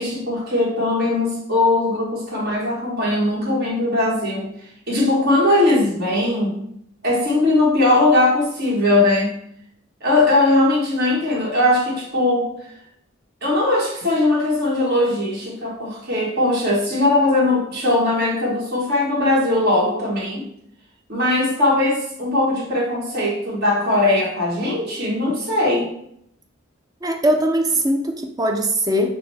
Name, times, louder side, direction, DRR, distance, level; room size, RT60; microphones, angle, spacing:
voice 1, 0.0-4.5 4.9-6.6 7.0-9.3 10.0-12.5 13.4-20.4 21.1-25.9, left 2 dB, 50° right, -4 dB, 1.3 m, -19 dB
voice 2, 27.0-29.1, right 1 dB, 20° right, 4 dB, 0.4 m, -20 dB
5.9 x 2.1 x 3.3 m, 0.73 s
head